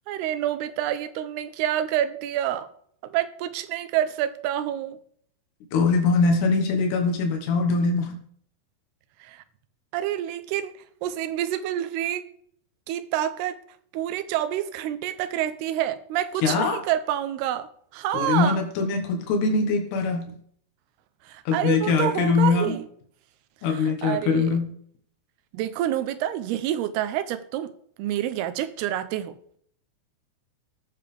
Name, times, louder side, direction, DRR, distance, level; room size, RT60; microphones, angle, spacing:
voice 1, 0.1-2.7 3.0-5.0 9.2-9.4 9.9-10.7 11.0-12.2 12.9-13.6 13.9-18.6 21.2-22.9 23.7-24.6 25.5-27.7 28.0-29.4, right 11 dB, 85° right, 11 dB, 2.7 m, -28 dB
voice 2, 5.7-8.2 16.4-16.8 18.1-20.3 21.5-22.8 23.6-24.7, left 4 dB, 90° left, 3 dB, 3.4 m, -22 dB
19.0 x 7.0 x 3.4 m, 0.62 s
omnidirectional pair, 4.6 m